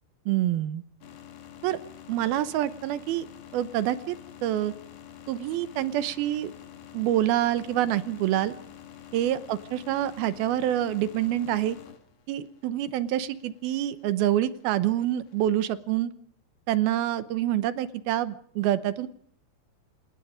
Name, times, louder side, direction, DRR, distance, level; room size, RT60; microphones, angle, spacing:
voice 1, 0.3-0.8 1.6-1.8 2.1-3.3 3.5-4.2 4.4-4.7 5.3-6.5 6.9-8.5 9.1-11.8 12.3-16.1 16.7-19.1, right 12 dB, 75° right, 14 dB, 2.6 m, -26 dB
sound 1, 1.0-15.6, left 10 dB, 60° left, 3.7 m, -48 dB
27.0 x 20.0 x 5.1 m, 0.63 s
omnidirectional pair, 4.8 m